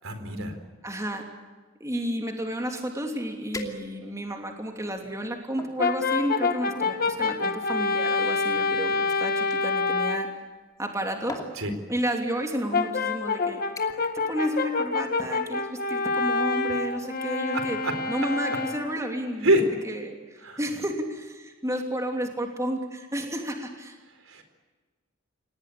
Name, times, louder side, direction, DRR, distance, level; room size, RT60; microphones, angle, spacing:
voice 1, 0.0-0.6 11.6-11.7 17.5-17.9 18.5-18.6 19.4-19.7 20.4-20.6 24.3-24.4, right 1 dB, 75° right, 8 dB, 4.3 m, -25 dB
voice 2, 0.8-1.2 1.8-10.3 10.8-11.4 11.9-13.6 14.3-17.8 18.1-24.0, equal, 15° right, 3 dB, 3.1 m, -31 dB
sound 1, 3.5-4.3 4.9-5.8 6.7-9.6 10.7-11.0 11.3-11.6 12.5-12.6 13.1-13.3 13.8-14.2 14.5-14.8 15.2-15.3, left 1 dB, 15° left, 2.7 m, -42 dB
Brass instrument, 5.8-10.4 12.7-19.1, left 4 dB, 45° left, 1.7 m, -27 dB
29.0 x 18.5 x 8.7 m, 1.4 s
head